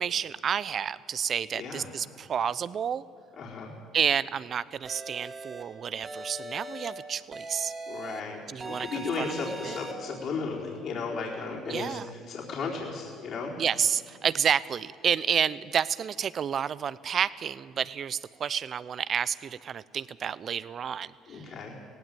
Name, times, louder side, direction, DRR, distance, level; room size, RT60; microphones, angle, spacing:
voice 1, 0.0-3.0 3.9-7.7 8.5-9.8 11.7-12.1 13.6-21.5, right 8 dB, 50° right, 18 dB, 0.6 m, -30 dB
voice 2, 1.5-1.9 3.4-3.7 7.9-12.0 12.3-13.5 21.3-21.7, left 4 dB, 55° left, -3 dB, 4.2 m, -35 dB
sound 1, 4.8-5.6 6.0-6.9 7.3-8.2 8.6-9.9, right 2 dB, 25° right, 3.1 m, -40 dB
17.5 x 16.5 x 9.3 m, 2.2 s
supercardioid pair, 75°, 0 cm